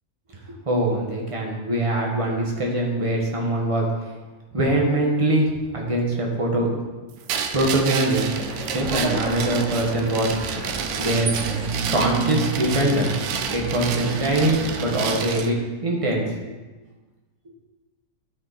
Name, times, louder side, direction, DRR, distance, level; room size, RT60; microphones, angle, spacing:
voice 1, 0.6-3.9 4.5-6.9 7.5-10.4 11.0-11.3 11.8-13.1 13.5-15.6 15.8-16.2, right 1 dB, 20° right, -1 dB, 1.4 m, -23 dB
sound 1, 7.3-15.5, right 7 dB, 85° right, 1.2 m, -31 dB
sound 2, 8.2-15.3, right 4 dB, 60° right, 1.2 m, -30 dB
12.0 x 4.9 x 4.2 m, 1.2 s
omnidirectional pair, 1.6 m